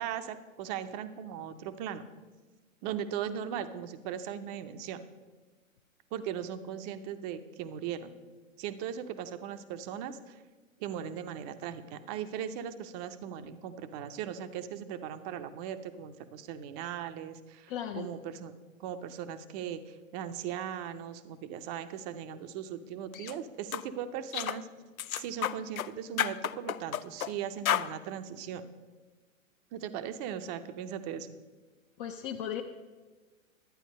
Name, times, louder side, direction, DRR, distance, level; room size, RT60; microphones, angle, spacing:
voice 1, 0.0-2.1 2.8-5.0 6.1-8.2 8.6-10.4 10.8-18.5 18.8-24.7 25.2-28.6 29.7-31.3, right 9 dB, 30° right, 11 dB, 0.7 m, -38 dB
voice 2, 17.7-18.1 32.0-32.6, left 10 dB, 35° left, 2 dB, 0.6 m, -36 dB
sound 1, 23.1-23.3 23.7-23.9 24.3-24.6 25.0-25.9 26.2-27.3 27.6-27.9, left 10 dB, 85° left, 0.6 m, -31 dB
11.5 x 8.9 x 5.3 m, 1.3 s
hypercardioid pair, 120°, 41 cm